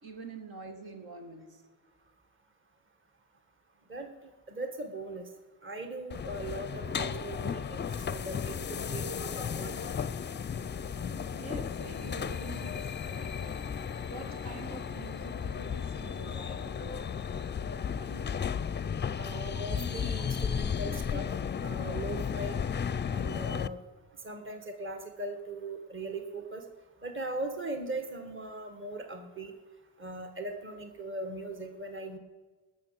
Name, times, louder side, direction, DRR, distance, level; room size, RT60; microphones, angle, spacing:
voice 1, 0.0-1.6 10.3-10.5 11.3-13.6 14.1-17.3 18.0-18.2, right 3 dB, 70° right, 3 dB, 2.1 m, -46 dB
voice 2, 4.5-5.3 5.6-9.9 19.2-21.2 21.6-22.5 23.1-23.8 24.2-26.6 27.0-29.5 30.0-32.2, right 2 dB, 30° right, 5 dB, 1.6 m, -39 dB
sound 1, 6.1-23.7, left 7 dB, 30° left, 0.5 m, -34 dB
sound 2, 9.5-21.8, right 3 dB, 45° right, 2.1 m, -56 dB
19.0 x 6.7 x 7.5 m, 1.3 s
cardioid pair, 70°, 38 cm